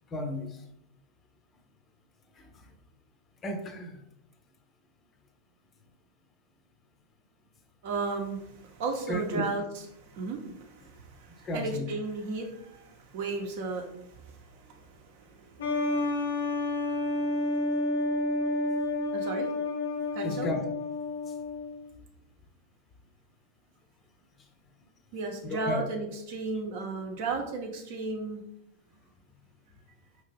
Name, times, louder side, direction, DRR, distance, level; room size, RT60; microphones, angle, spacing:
voice 1, 0.1-0.6 2.4-2.5 3.4-4.0 9.1-9.5 11.4-11.9 20.2-20.6 25.4-25.9, left 1 dB, 25° left, 6 dB, 0.6 m, -33 dB
voice 2, 7.8-16.1 16.4-16.5 19.1-19.5 20.1-20.5 25.1-28.4, right 3 dB, 50° right, 2 dB, 0.8 m, -35 dB
sound 1, 15.6-21.9, left 2 dB, 65° left, 0.7 m, -30 dB
4.7 x 2.9 x 3.4 m, 0.76 s
figure-of-eight pair, 90°, 0 cm